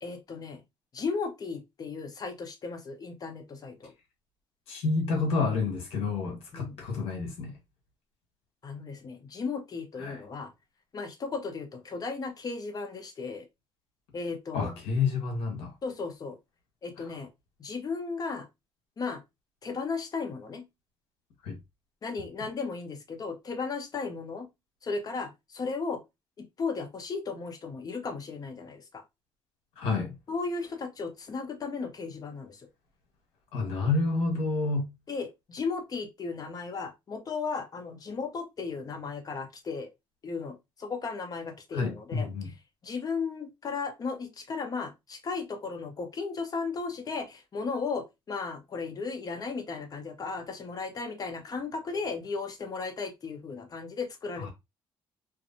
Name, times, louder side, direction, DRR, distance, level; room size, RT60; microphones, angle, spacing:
voice 1, 0.0-0.6 0.9-3.9 6.5-6.8 8.6-10.5 10.9-13.5 14.1-14.7 15.8-16.4 16.8-17.3 17.6-18.5 19.0-19.2 19.6-20.6 22.0-24.5 24.8-26.0 26.4-29.0 30.3-32.7 35.1-39.9 40.2-42.3 42.8-54.5, left 4 dB, 40° left, 0.7 m, -35 dB
voice 2, 4.7-7.5 10.0-10.2 14.5-15.7 17.0-17.2 21.4-21.6 29.8-30.1 33.5-34.9 41.7-42.5 54.4-54.5, left 4 dB, 80° left, 1.3 m, -29 dB
2.5 x 2.3 x 2.6 m
cardioid pair, 95°, 10 cm